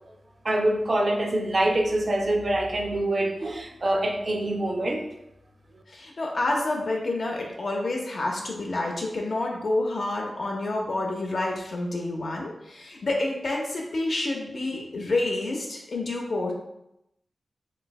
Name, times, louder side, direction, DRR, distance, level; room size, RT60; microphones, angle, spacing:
voice 1, 0.4-5.1, right 1 dB, 35° right, 2 dB, 0.4 m, -25 dB
voice 2, 5.9-16.5, left 2 dB, 60° left, 0 dB, 0.4 m, -28 dB
3.3 x 3.0 x 2.2 m, 0.85 s
wide cardioid pair, 135°, 0 cm